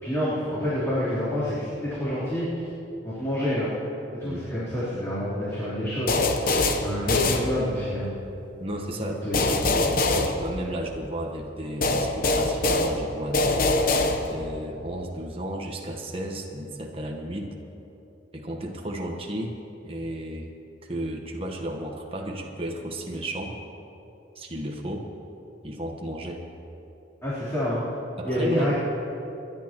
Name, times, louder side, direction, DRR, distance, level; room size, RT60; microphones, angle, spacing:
voice 1, 0.0-2.5 3.0-3.7 4.1-6.3 6.8-8.1 9.0-9.4 27.2-27.8 28.2-28.8, equal, 15° left, -12 dB, 3.5 m, -28 dB
voice 2, 4.2-4.6 8.6-14.0 14.2-17.5 18.3-20.5 20.9-23.6 24.3-25.1 25.6-26.4 28.2-28.8, right 1 dB, 30° right, 1 dB, 1.2 m, -33 dB
sound 1, 6.1-8.0 9.3-11.1 11.8-14.6, left 2 dB, 50° left, 0.8 m, -24 dB
28.5 x 11.0 x 3.0 m, 2.9 s
head